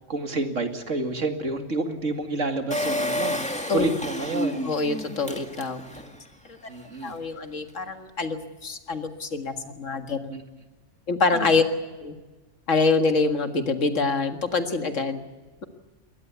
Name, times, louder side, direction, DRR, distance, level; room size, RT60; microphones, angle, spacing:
voice 1, 0.1-3.4 3.7-4.7 6.7-7.2 10.3-10.4 11.3-11.6, right 3 dB, 85° right, 6 dB, 2.6 m, -29 dB
Engine, 2.7-6.2 6.6-6.7 6.9-7.0, left 1 dB, 5° left, 2.0 m, -30 dB
voice 2, 4.7-5.8 6.5-6.6 7.0-10.4 11.1-11.6 12.0-12.2 12.7-15.3, left 3 dB, 85° left, 7 dB, 2.2 m, -25 dB
22.0 x 19.0 x 8.2 m, 1.2 s
omnidirectional pair, 1.3 m